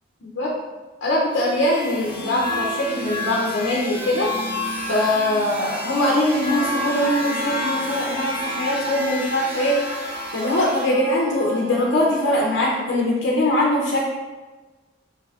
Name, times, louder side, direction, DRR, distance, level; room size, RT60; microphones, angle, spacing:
voice 1, 0.2-0.5 1.0-4.3 4.9-9.8 10.3-14.1, left 1 dB, 75° left, -3 dB, 0.6 m, -22 dB
sound 1, 1.3-10.9, left 2 dB, 25° right, 1.3 m, -30 dB
Screaming, 6.9-12.8, right 1 dB, 85° right, 1.3 m, -35 dB
5.7 x 2.6 x 2.4 m, 1.3 s
head